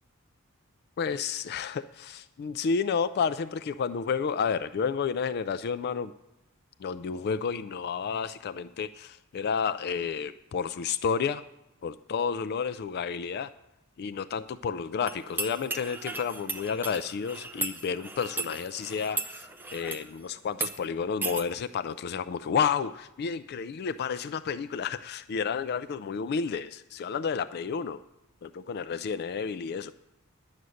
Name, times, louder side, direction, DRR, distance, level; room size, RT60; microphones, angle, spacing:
voice 1, 1.0-6.1 6.8-11.4 11.8-13.5 14.0-28.0 28.4-29.9, left 6 dB, 50° left, 13 dB, 0.3 m, -31 dB
sound 1, 15.1-20.1 20.5-20.7 21.2-21.4, right 3 dB, 10° right, 0.7 m, -36 dB
11.0 x 8.1 x 6.3 m, 0.96 s
head